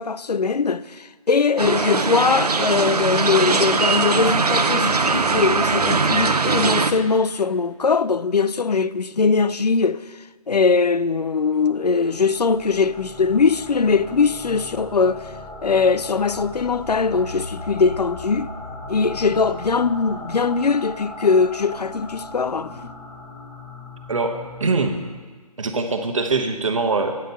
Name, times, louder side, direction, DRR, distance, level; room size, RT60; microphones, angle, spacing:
voice 1, 0.0-15.3 15.6-18.5 18.9-22.9, left 5 dB, 90° left, 0.4 m, -21 dB
sound 1, 1.6-6.9, right 4 dB, 80° right, 0.7 m, -20 dB
sound 2, 11.5-25.0, left 2 dB, 10° left, 0.9 m, -37 dB
voice 2, 24.1-25.0 25.6-27.2, right 3 dB, 55° right, 1.1 m, -23 dB
8.9 x 5.2 x 7.9 m
figure-of-eight pair, 145°, 20 cm